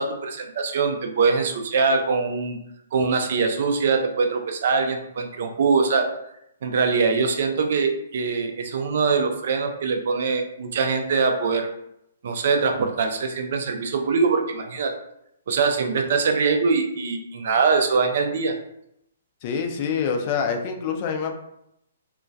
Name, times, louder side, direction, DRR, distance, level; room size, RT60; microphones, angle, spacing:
voice 1, 0.0-2.6 2.9-6.1 6.6-11.7 12.2-14.9 15.5-18.5, right 4 dB, 60° right, 5 dB, 0.4 m, -23 dB
voice 2, 19.4-21.3, left 6 dB, 40° left, 4 dB, 0.4 m, -26 dB
2.3 x 2.1 x 2.6 m, 0.78 s
hypercardioid pair, 135°, 0 cm